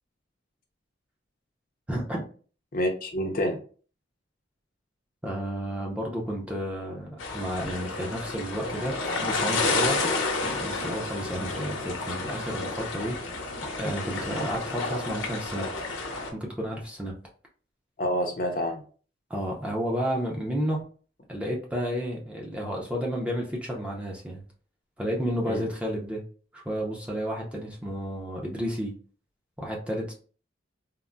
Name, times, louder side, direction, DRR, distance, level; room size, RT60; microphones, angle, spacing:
voice 1, 1.9-2.2 5.2-9.0 9.2-10.0 10.4-13.2 13.8-15.7 16.3-17.2 19.3-20.8 21.3-24.4 25.0-26.2 26.5-28.9 29.6-30.1, equal, 5° right, -2 dB, 0.5 m, -31 dB
voice 2, 2.7-3.6 18.0-18.8 25.5-25.6, equal, 45° left, 2 dB, 0.5 m, -28 dB
sound 1, 7.2-16.3, left 3 dB, 90° left, 0.8 m, -30 dB
3.7 x 2.0 x 2.2 m, 0.40 s
head